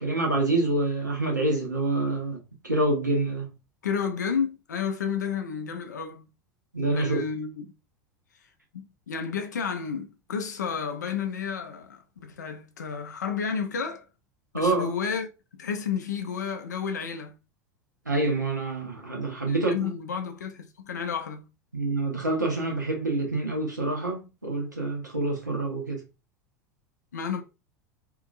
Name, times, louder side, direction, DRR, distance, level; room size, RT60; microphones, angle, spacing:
voice 1, 0.0-2.4 2.6-3.5 6.7-7.3 14.5-14.9 18.1-19.9 21.7-26.0, right 2 dB, 90° right, 1.0 m, -27 dB
voice 2, 3.8-6.3 6.9-7.7 8.7-14.1 14.5-15.3 15.5-17.3 19.5-21.5 27.1-27.4, left 6 dB, 75° left, 0.5 m, -31 dB
2.8 x 2.5 x 2.4 m
figure-of-eight pair, 80°, 10 cm